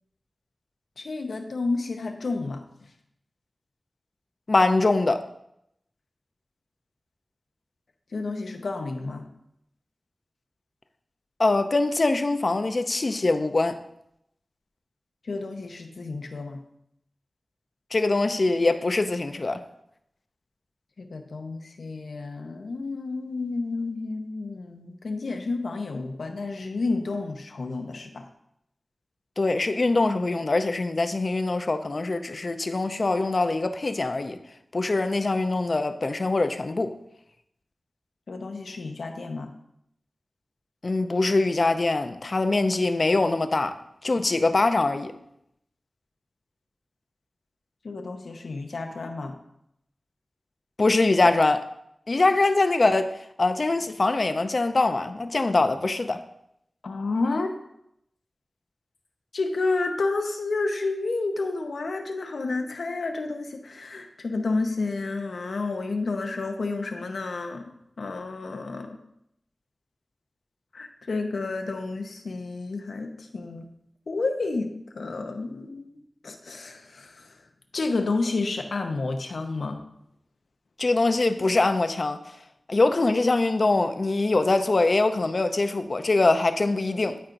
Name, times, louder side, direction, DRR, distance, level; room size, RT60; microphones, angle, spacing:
voice 1, 1.0-2.6 8.1-9.3 15.2-16.6 21.0-28.3 38.3-39.5 47.8-49.3 56.8-57.5 59.3-69.0 70.7-73.7 74.1-77.4 77.7-79.8, left 3 dB, 90° left, 0.8 m, -30 dB
voice 2, 4.5-5.2 11.4-13.8 17.9-19.6 29.4-34.4 34.7-36.9 40.8-43.8 44.0-45.1 50.8-51.7 52.1-53.1 53.4-56.2 80.8-82.2 82.7-87.2, left 2 dB, 55° left, 0.6 m, -23 dB
12.5 x 4.4 x 2.6 m
wide cardioid pair, 55°, 0 cm